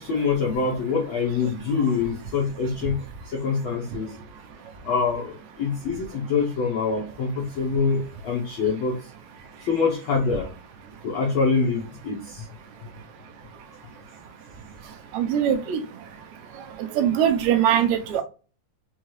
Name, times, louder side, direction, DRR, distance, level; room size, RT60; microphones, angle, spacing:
voice 1, 0.0-3.0 3.3-4.1 4.8-5.3 5.6-8.9 9.7-10.5 11.0-12.4, left 5 dB, 85° left, 1.1 m, -25 dB
voice 2, 15.1-15.8 16.8-18.2, right 9 dB, 75° right, 1.9 m, -22 dB
5.6 x 2.3 x 3.1 m
omnidirectional pair, 3.4 m